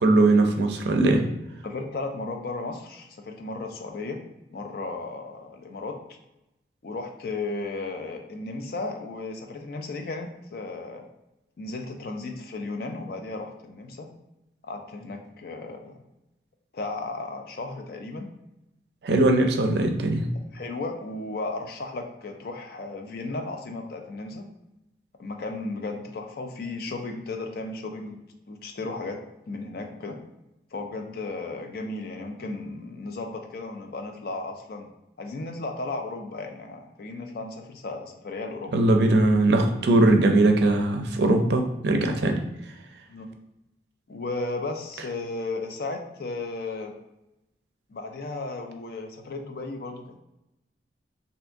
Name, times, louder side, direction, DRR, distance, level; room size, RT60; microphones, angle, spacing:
voice 1, 0.0-1.2 19.0-20.3 38.7-42.3, right 2 dB, 65° right, 4 dB, 0.4 m, -20 dB
voice 2, 1.6-4.2 4.5-6.0 6.8-11.1 11.6-14.1 14.6-15.9 16.7-18.3 20.5-24.5 25.2-28.2 28.5-29.2 29.5-30.2 30.7-34.9 35.2-38.7 43.1-43.3 44.1-46.9 47.9-50.2, left 3 dB, 55° left, 4 dB, 0.4 m, -34 dB
3.4 x 2.7 x 2.5 m, 0.91 s
head